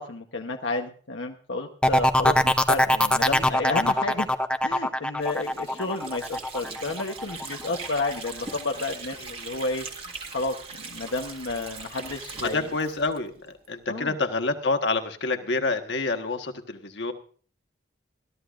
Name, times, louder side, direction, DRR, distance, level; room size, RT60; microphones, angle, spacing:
voice 1, 0.0-4.3 4.6-9.9 10.3-10.6 10.9-12.6 13.9-14.2, left 3 dB, 85° left, 2 dB, 1.0 m, -31 dB
sound 1, 1.8-7.5 7.8-8.3, left 1 dB, 5° left, 0.6 m, -22 dB
Water / Sink (filling or washing), 5.2-13.7, right 4 dB, 30° right, 1.8 m, -40 dB
voice 2, 12.4-17.1, left 3 dB, 65° left, 6 dB, 1.4 m, -27 dB
21.5 x 13.5 x 2.5 m, 0.43 s
head